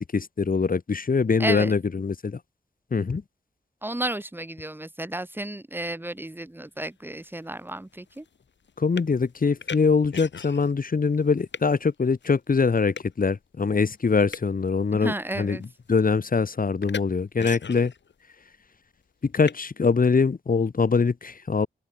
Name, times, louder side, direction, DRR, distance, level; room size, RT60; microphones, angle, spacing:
voice 1, 0.0-2.4 2.9-3.2 8.8-15.6 15.9-17.9 19.2-21.7, left 4 dB, 50° left, 5.2 m, -23 dB
voice 2, 1.4-1.8 3.8-8.2 14.9-15.6, right 1 dB, 10° right, 4.7 m, -32 dB
sound 1, 6.8-6.9 7.2-10.8 11.1-11.7 12.2-12.3 12.9-13.1 14.0-14.6 15.3-15.7 16.0-16.3 16.8-17.1 17.4-18.1 19.5-19.6, left 6 dB, 75° left, 3.5 m, -38 dB
open air
wide cardioid pair, 160°, 19 cm